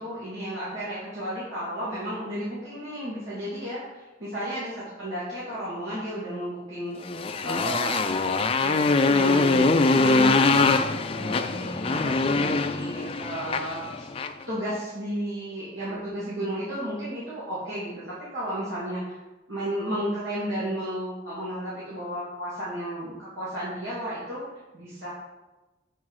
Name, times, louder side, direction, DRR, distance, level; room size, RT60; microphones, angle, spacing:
voice 1, 0.0-7.0 7.4-14.1 14.5-19.2 19.5-24.4 24.7-25.1, equal, 85° right, -10 dB, 2.5 m, -33 dB
Motorcycle, 7.0-14.4, left 3 dB, 30° left, 0.4 m, -23 dB
7.4 x 4.7 x 4.7 m, 1.1 s
head